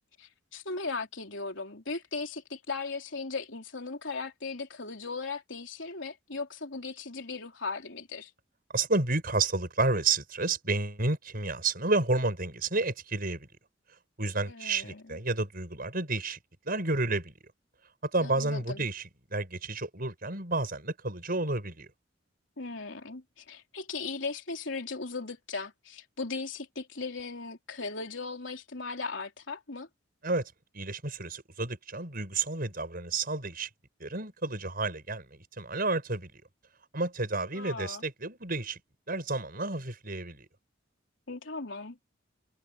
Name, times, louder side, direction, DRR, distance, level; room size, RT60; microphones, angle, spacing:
voice 1, 0.2-8.3 14.5-15.2 18.2-18.9 22.6-29.9 37.5-38.0 41.3-42.0, left 4 dB, 75° left, 3.5 m, -37 dB
voice 2, 8.7-13.5 14.2-16.4 16.6-17.3 18.0-21.9 30.2-33.7 34.0-36.3 36.9-38.8 39.1-40.5, right 3 dB, 50° right, 6.2 m, -31 dB
head